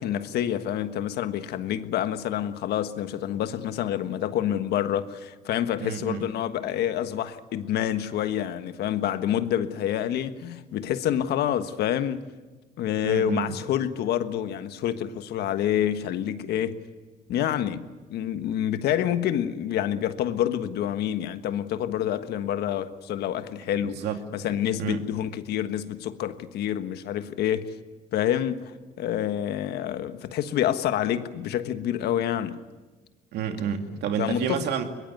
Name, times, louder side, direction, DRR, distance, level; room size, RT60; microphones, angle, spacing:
voice 1, 0.0-12.2 12.8-16.8 17.3-24.0 24.3-27.8 28.1-32.6 34.2-34.7, left 10 dB, 75° left, 1.4 m, -27 dB
voice 2, 5.8-6.2 13.0-13.6 24.0-24.2 24.8-25.0 33.3-34.8, right 8 dB, 80° right, 2.6 m, -29 dB
22.0 x 22.0 x 9.4 m
cardioid pair, 110°, 17 cm